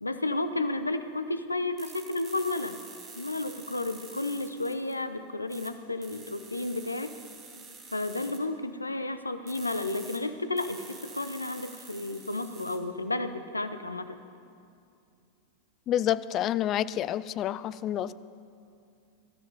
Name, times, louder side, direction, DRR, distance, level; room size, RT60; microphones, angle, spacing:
voice 1, 0.0-2.8 3.1-7.1 7.9-14.2, left 2 dB, 80° left, 10 dB, 0.6 m, -32 dB
sound 1, 1.8-5.0 5.5-5.7 6.0-8.4 9.5-10.2 10.6-12.8, right 5 dB, 25° right, 1.8 m, -48 dB
voice 2, 15.9-18.1, left 11 dB, 35° left, 16 dB, 0.4 m, -28 dB
23.5 x 13.0 x 2.9 m, 2.5 s
figure-of-eight pair, 90°, 0 cm